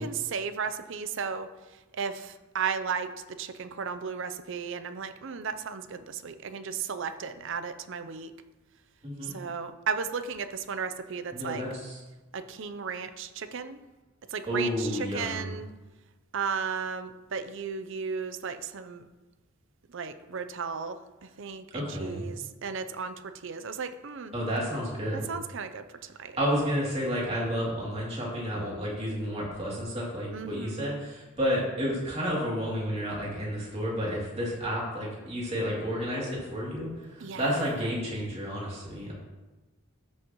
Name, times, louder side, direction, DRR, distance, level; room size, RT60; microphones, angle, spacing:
voice 1, 0.0-1.5 1.9-3.1 3.4-8.3 9.2-11.6 12.3-13.8 14.3-15.7 16.3-19.1 19.9-24.4 25.3-26.4 30.3-30.9 37.2-37.6, right 6 dB, 60° right, 11 dB, 0.6 m, -35 dB
voice 2, 11.3-12.0 14.5-15.5 21.7-22.3 24.3-25.3 26.4-39.1, equal, 30° right, -5 dB, 2.7 m, -31 dB
13.0 x 6.4 x 3.0 m, 1.1 s
head